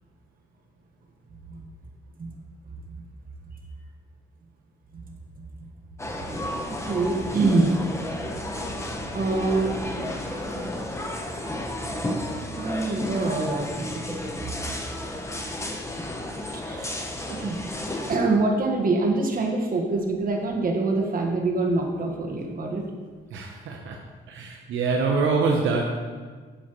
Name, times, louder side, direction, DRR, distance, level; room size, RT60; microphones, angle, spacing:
sound 1, 6.0-18.2, left 1 dB, 15° left, 1.1 m, -32 dB
voice 1, 6.6-7.7 9.1-10.7 12.5-14.2 16.5-16.9 17.3-17.6 18.1-22.8, right 3 dB, 45° right, 1 dB, 1.5 m, -25 dB
voice 2, 23.3-24.0 24.3-25.8, right 4 dB, 75° right, 1 dB, 0.9 m, -25 dB
10.0 x 7.6 x 3.1 m, 1.5 s
cardioid pair, 90°, 20 cm